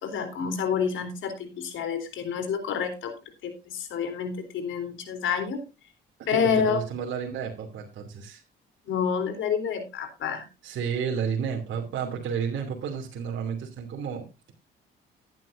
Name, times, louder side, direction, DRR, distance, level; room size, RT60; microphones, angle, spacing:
voice 1, 0.0-3.1 3.4-5.6 6.3-6.8 8.8-10.4, left 7 dB, 80° left, 8 dB, 3.6 m, -28 dB
voice 2, 6.3-8.4 10.6-14.5, right 7 dB, 70° right, 0 dB, 2.8 m, -31 dB
15.5 x 11.0 x 2.6 m, 0.27 s
cardioid pair, 90°, 20 cm